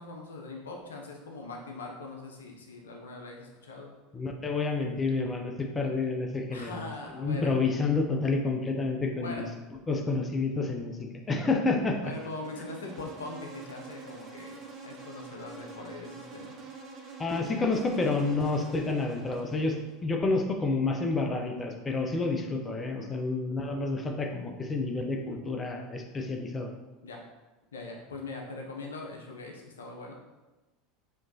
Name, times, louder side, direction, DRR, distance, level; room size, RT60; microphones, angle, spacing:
voice 1, 0.0-3.9 6.5-7.6 9.2-9.5 12.0-16.5 23.0-23.3 27.0-27.2 27.7-30.1, left 3 dB, 80° left, 0 dB, 0.6 m, -41 dB
voice 2, 4.1-9.5 9.9-12.1 17.2-26.7, left 3 dB, 25° left, 3 dB, 0.5 m, -29 dB
Insect, 11.8-20.0, right 3 dB, 40° right, 0.8 m, -46 dB
4.3 x 3.0 x 2.8 m, 1.1 s
hypercardioid pair, 80°, 0 cm